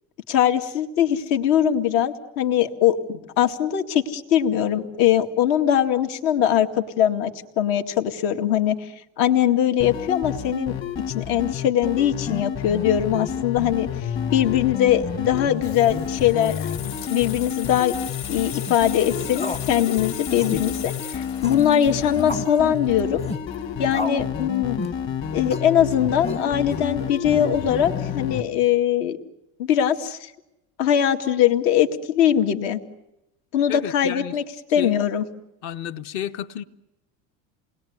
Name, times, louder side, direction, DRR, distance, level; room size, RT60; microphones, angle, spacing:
voice 1, 0.3-8.9 9.2-10.8 11.1-16.7 17.1-17.9 18.3-23.2 23.8-24.8 25.3-29.2 29.6-30.3 30.8-32.8 33.5-34.4 34.7-35.2, left 10 dB, 65° left, 2.3 m, -21 dB
sound 1, 9.8-28.4, left 8 dB, 35° left, 1.8 m, -30 dB
Water tap faucet / Sink (filling or washing), 15.2-24.6 24.8-25.1, left 9 dB, 85° left, 4.0 m, -38 dB
sound 2, 18.5-18.8 19.3-19.7 19.9-20.0 20.4-20.6 21.4-21.7 22.3-22.5 23.2-23.4 23.9-24.3 24.8-25.0 25.5-25.7 26.3-26.7, left 2 dB, 15° left, 0.9 m, -32 dB
voice 2, 33.7-34.4 34.7-35.0 35.6-36.6, left 10 dB, 50° left, 1.2 m, -31 dB
29.0 x 21.0 x 9.5 m
cardioid pair, 180°, 38 cm